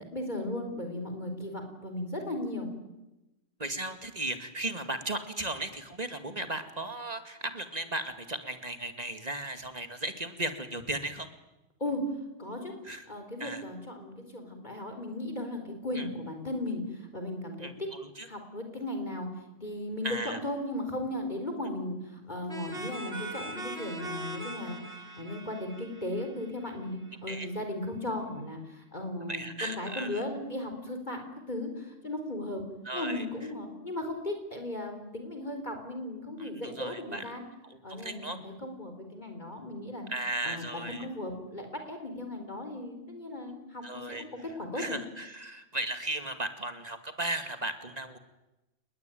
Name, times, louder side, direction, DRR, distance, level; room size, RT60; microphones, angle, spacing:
voice 1, 0.0-2.7 11.8-12.0 12.4-12.7 13.1-16.8 17.1-17.7 18.3-19.3 19.6-22.0 22.3-24.8 25.2-31.2 31.5-32.6 32.9-37.4 37.8-40.0 40.4-44.3 44.6-45.0, left 1 dB, 35° left, 5 dB, 4.4 m, -36 dB
voice 2, 3.6-11.3 12.8-13.1 13.4-13.6 15.9-16.1 17.6-18.3 20.0-20.4 27.3-27.5 29.3-30.2 32.8-33.3 36.4-37.3 37.6-38.4 40.1-41.1 43.8-44.2 44.7-48.2, right 2 dB, 30° right, 8 dB, 2.3 m, -36 dB
sound 1, 22.5-27.1, right 2 dB, 50° right, 3.0 m, -41 dB
28.5 x 20.5 x 9.3 m, 0.98 s
omnidirectional pair, 1.3 m